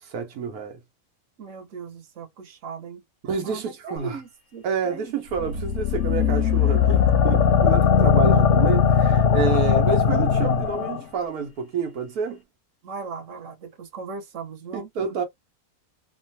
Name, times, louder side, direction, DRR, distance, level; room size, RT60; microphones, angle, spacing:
voice 1, 0.0-0.8 3.2-4.2 4.6-12.4 14.7-15.2, right 5 dB, 85° right, 1.3 m, -28 dB
voice 2, 1.4-3.0 3.4-5.1 5.4-5.5 12.8-15.2, right 5 dB, 60° right, 1.3 m, -38 dB
sound 1, 5.4-11.0, left 7 dB, 65° left, 0.8 m, -19 dB
2.9 x 2.2 x 2.7 m
omnidirectional pair, 1.6 m